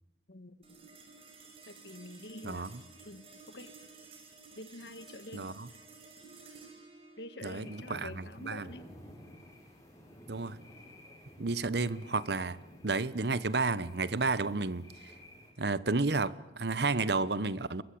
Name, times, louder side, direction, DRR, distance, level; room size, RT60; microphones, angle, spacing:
sound 1, 0.6-11.2, right 4 dB, 35° right, 6.3 m, -55 dB
voice 1, 1.6-2.7 3.0-3.7 4.6-5.8 7.2-8.9, left 1 dB, 80° left, 1.7 m, -47 dB
voice 2, 5.3-5.7 7.4-8.7 10.3-10.6 11.4-12.6 12.8-14.9 15.6-17.8, right 3 dB, 75° right, 1.0 m, -31 dB
sound 2, 7.5-15.5, left 1 dB, 20° left, 7.3 m, -54 dB
30.0 x 22.0 x 8.6 m
head